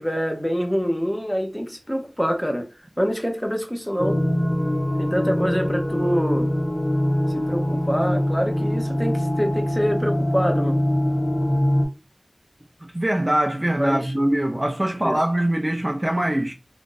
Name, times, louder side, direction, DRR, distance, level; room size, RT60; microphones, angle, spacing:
voice 1, 0.0-2.7 3.0-4.2 5.0-6.5 7.3-10.8 13.8-14.1 15.0-15.2, equal, 5° left, 0.9 m, -25 dB
sound 1, 4.0-11.8, equal, 45° left, 0.9 m, -23 dB
voice 2, 12.8-16.5, right 1 dB, 30° right, 0.5 m, -23 dB
2.6 x 2.4 x 3.8 m
wide cardioid pair, 50°, 0 cm